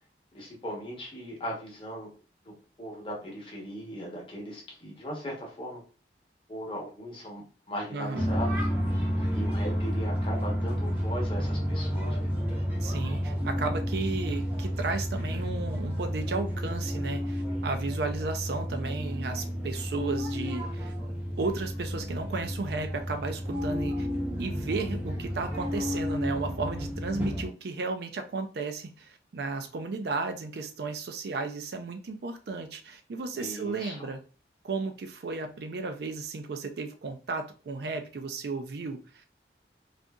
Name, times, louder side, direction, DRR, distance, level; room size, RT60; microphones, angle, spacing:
voice 1, 0.3-2.1 2.4-5.8 6.5-12.3 33.3-34.1, equal, 30° left, 0.9 m, -38 dB
voice 2, 7.9-8.4 12.8-20.9 21.4-24.1 24.4-34.2 34.6-39.3, right 3 dB, 60° right, 0.4 m, -34 dB
sound 1, 8.1-27.5, equal, 10° right, 0.6 m, -31 dB
2.7 x 2.5 x 2.2 m
head